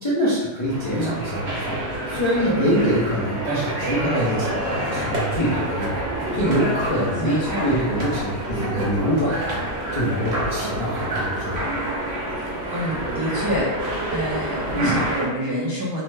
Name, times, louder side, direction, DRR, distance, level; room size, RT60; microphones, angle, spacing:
voice 1, 0.0-9.6 9.9-11.7 14.7-15.1, equal, 45° left, -9 dB, 0.4 m, -24 dB
sound 1, 0.6-15.3, right 1 dB, 60° right, 1.0 m, -27 dB
voice 2, 7.2-7.7 12.7-13.7 14.1-16.0, equal, 40° right, -8 dB, 0.3 m, -27 dB
2.7 x 2.1 x 3.1 m, 1.2 s
omnidirectional pair, 1.3 m